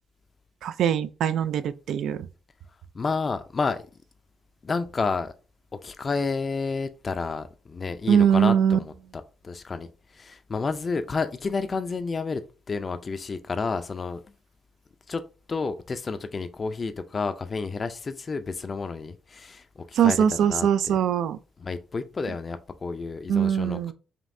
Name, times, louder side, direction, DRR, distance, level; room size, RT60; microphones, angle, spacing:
voice 1, 0.6-2.3 8.1-8.8 20.0-21.4 23.3-23.9, right 8 dB, 75° right, 0.3 m, -22 dB
voice 2, 2.9-3.8 4.6-5.3 5.7-8.9 9.4-9.9 10.1-12.4 12.7-14.2 15.1-15.2 15.5-20.9 21.6-23.9, left 4 dB, 35° left, 0.4 m, -30 dB
5.1 x 2.7 x 2.6 m
cardioid pair, 90°, 0 cm